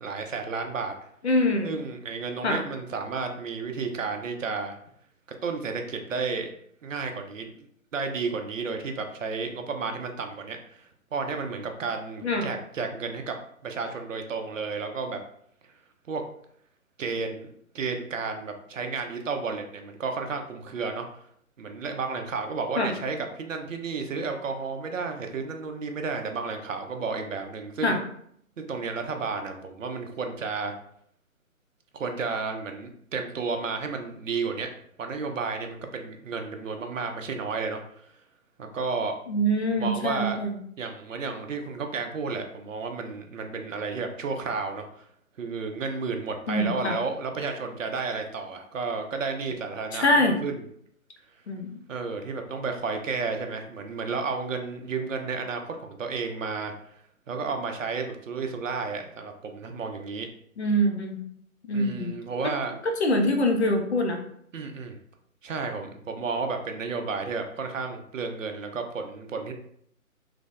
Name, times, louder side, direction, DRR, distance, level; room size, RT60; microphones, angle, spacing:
voice 1, 0.0-0.9 1.6-4.8 5.4-6.5 6.8-7.5 7.9-13.4 13.6-15.2 16.1-16.2 17.0-21.1 21.6-28.0 28.6-30.7 31.9-34.7 35.0-38.1 38.6-39.1 39.7-40.4 40.8-45.1 45.4-50.6 51.9-56.7 57.3-60.3 61.7-62.7 64.5-65.0 65.4-69.5, right 4 dB, 65° right, 5 dB, 0.5 m, -32 dB
voice 2, 1.2-1.8 2.4-2.6 12.2-12.5 22.8-22.9 27.8-28.0 39.3-40.6 46.5-47.0 49.9-50.4 51.5-51.8 60.6-61.2 61.7-62.1 62.4-62.5 62.8-64.2, left 1 dB, 50° left, 3 dB, 0.5 m, -24 dB
3.2 x 2.0 x 2.4 m, 0.68 s
figure-of-eight pair, 145°, 43 cm